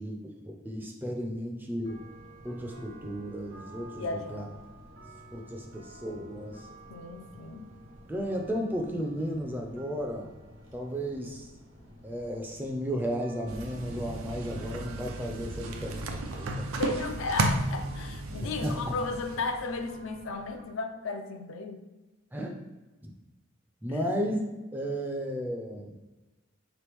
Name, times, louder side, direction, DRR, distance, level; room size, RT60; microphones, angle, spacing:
voice 1, 0.0-2.0 2.4-4.5 5.3-6.7 8.1-10.3 10.7-11.5 12.0-16.7 18.3-18.8 22.3-22.6 23.0-23.1 23.8-24.4 24.7-25.9, equal, 10° right, 1 dB, 0.4 m, -34 dB
sound 1, 1.8-20.6, right 1 dB, 65° right, 1.2 m, -51 dB
voice 2, 4.0-4.5 6.9-7.7 16.8-21.8 23.9-24.0, left 3 dB, 75° left, 6 dB, 0.4 m, -34 dB
sound 2, 13.5-20.0, right 2 dB, 85° right, 0.5 m, -34 dB
4.5 x 3.0 x 3.4 m, 1.1 s
head